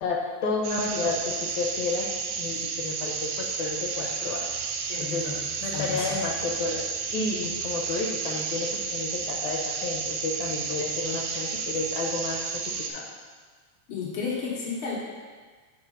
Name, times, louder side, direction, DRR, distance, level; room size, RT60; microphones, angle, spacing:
voice 1, 0.0-4.5 5.0-5.3 5.6-6.9 7.1-12.6 12.9-13.1, left 3 dB, 80° left, 0 dB, 2.2 m, -31 dB
sound 1, 0.6-12.9, right 5 dB, 75° right, 1.7 m, -32 dB
voice 2, 4.9-5.4 5.7-6.2 13.9-15.0, left 5 dB, 55° left, -4 dB, 1.8 m, -32 dB
6.5 x 4.3 x 5.4 m, 1.5 s
omnidirectional pair, 3.4 m